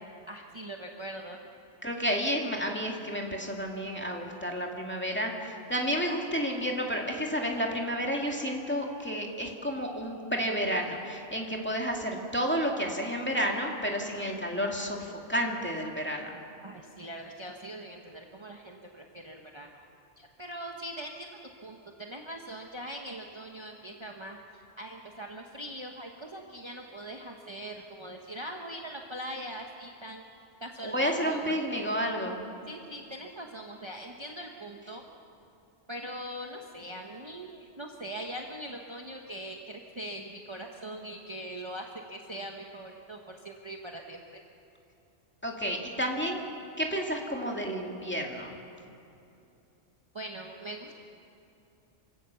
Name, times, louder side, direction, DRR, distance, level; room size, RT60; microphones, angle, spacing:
voice 1, 0.3-1.4 16.6-19.9 20.2-30.2 30.6-31.9 32.7-35.0 35.9-44.4 50.1-51.0, right 1 dB, 25° right, 1 dB, 1.2 m, -41 dB
voice 2, 1.8-16.4 30.8-32.4 45.4-46.4 46.8-48.5, equal, 10° left, 0 dB, 2.3 m, -31 dB
28.0 x 16.5 x 7.0 m, 2.7 s
omnidirectional pair, 1.2 m